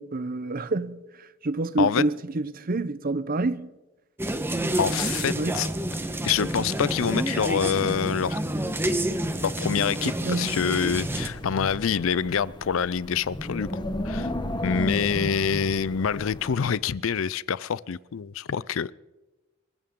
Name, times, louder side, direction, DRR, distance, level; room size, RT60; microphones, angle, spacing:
voice 1, 0.0-3.7 5.4-5.6 10.0-10.6, right 2 dB, 45° right, 0.8 m, -28 dB
sound 1, 4.2-11.3, right 1 dB, 10° right, 1.1 m, -29 dB
voice 2, 4.8-5.7 6.2-8.4 9.4-14.3 14.6-18.9, left 7 dB, 75° left, 0.5 m, -26 dB
Wind, 10.9-16.8, left 1 dB, 20° left, 1.2 m, -33 dB
27.0 x 14.0 x 3.8 m
head